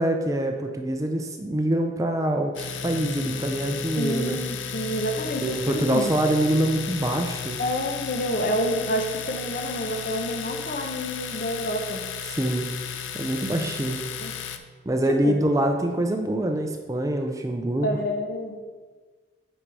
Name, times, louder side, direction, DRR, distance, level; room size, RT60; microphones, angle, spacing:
voice 1, 0.0-4.4 5.4-7.6 12.3-12.7 13.1-14.0 14.9-18.0, right 1 dB, 20° right, 4 dB, 0.4 m, -25 dB
Domestic sounds home sounds, 2.5-14.6, left 7 dB, 90° left, 0.5 m, -34 dB
voice 2, 4.0-6.0 7.6-12.0 14.2-14.3 15.2-15.4 17.8-18.6, equal, 50° left, 4 dB, 0.9 m, -28 dB
6.1 x 5.3 x 4.7 m, 1.4 s
head